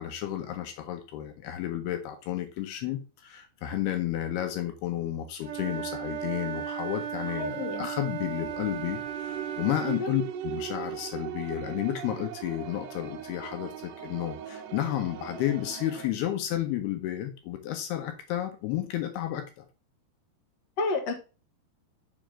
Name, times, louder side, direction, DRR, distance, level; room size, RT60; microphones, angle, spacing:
voice 1, 0.0-19.4, left 12 dB, 75° left, 6 dB, 2.8 m, -32 dB
Wind instrument woodwind instrument, 5.4-10.1, right 9 dB, 50° right, 2.0 m, -35 dB
voice 2, 7.3-7.9 9.8-10.1 20.8-21.1, left 3 dB, 55° left, 2 dB, 1.9 m, -31 dB
sound 1, 8.5-16.1, right 9 dB, 85° right, 1.9 m, -39 dB
6.3 x 5.3 x 3.7 m, 0.32 s
omnidirectional pair, 4.8 m